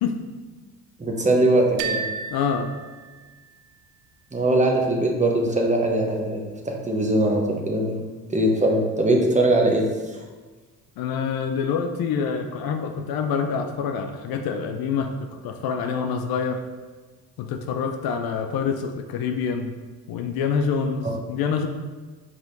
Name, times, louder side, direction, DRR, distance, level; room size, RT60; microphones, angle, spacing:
voice 1, 1.0-2.0 4.3-8.0 8.3-9.8 21.0-21.2, right 1 dB, 15° right, 1 dB, 0.9 m, -21 dB
sound 1, 1.8-3.7, right 5 dB, 65° right, 0.6 m, -33 dB
voice 2, 2.3-2.7 11.0-16.6 17.4-19.7 20.1-21.7, left 6 dB, 55° left, 6 dB, 0.5 m, -26 dB
4.8 x 4.2 x 2.6 m, 1.3 s
hypercardioid pair, 60°, 45 cm